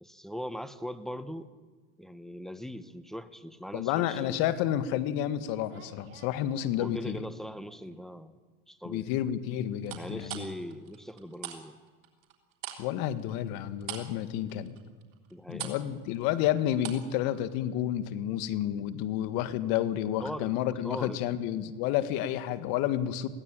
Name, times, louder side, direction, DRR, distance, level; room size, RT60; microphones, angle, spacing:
voice 1, 0.0-1.5 2.0-4.4 6.8-8.4 8.7-9.1 10.0-11.8 15.3-15.9 20.2-20.6 20.8-21.2, equal, ahead, 12 dB, 1.2 m, -40 dB
voice 2, 3.7-7.2 8.9-10.5 12.8-14.8 15.5-23.3, left 11 dB, 65° left, 12 dB, 1.8 m, -30 dB
sound 1, 5.5-7.2 7.6-8.1 9.8-11.6 11.9-17.1 17.4-17.5, right 11 dB, 80° right, 3.5 m, -43 dB
22.0 x 16.5 x 9.0 m, 1.4 s
supercardioid pair, 105°, 39 cm